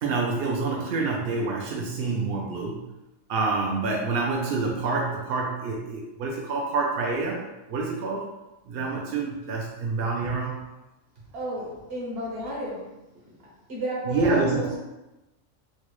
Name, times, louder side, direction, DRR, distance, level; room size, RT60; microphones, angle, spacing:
voice 1, 0.0-2.8 3.3-7.4 7.7-8.3 8.7-10.6 14.0-14.7, right 3 dB, 65° right, -1 dB, 0.6 m, -27 dB
voice 2, 11.3-12.9 13.2-14.7, right 1 dB, 50° right, -5 dB, 1.1 m, -32 dB
4.3 x 2.0 x 3.0 m, 1.0 s
omnidirectional pair, 1.4 m